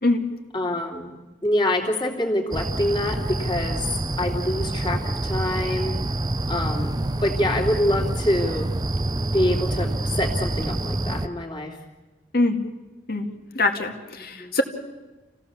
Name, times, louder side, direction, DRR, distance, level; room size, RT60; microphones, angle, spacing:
voice 1, 0.5-3.9 4.2-6.0 6.5-8.7 9.3-11.8 14.2-14.5, left 1 dB, 25° left, 1 dB, 3.0 m, -26 dB
sound 1, 2.5-11.3, right 2 dB, 20° right, 0.6 m, -27 dB
voice 2, 13.5-14.6, left 2 dB, 55° left, 5 dB, 2.3 m, -23 dB
28.5 x 16.5 x 7.2 m, 1.2 s
head